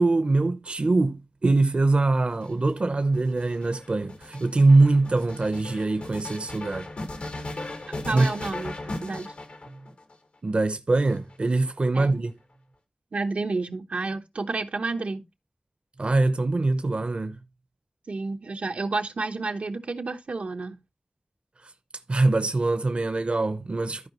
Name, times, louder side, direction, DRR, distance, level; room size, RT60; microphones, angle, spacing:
voice 1, 0.0-6.9 8.1-8.3 10.4-12.3 16.0-17.4 21.6-21.7 22.1-24.1, right 2 dB, 55° right, 0.8 m, -23 dB
sound 1, 2.2-10.1 10.9-11.8, left 2 dB, 80° left, 2.0 m, -37 dB
voice 2, 7.9-9.3 11.9-12.2 13.1-15.2 18.1-20.8, right 3 dB, 85° right, 1.1 m, -31 dB
13.5 x 4.9 x 3.0 m
wide cardioid pair, 65°, 2 cm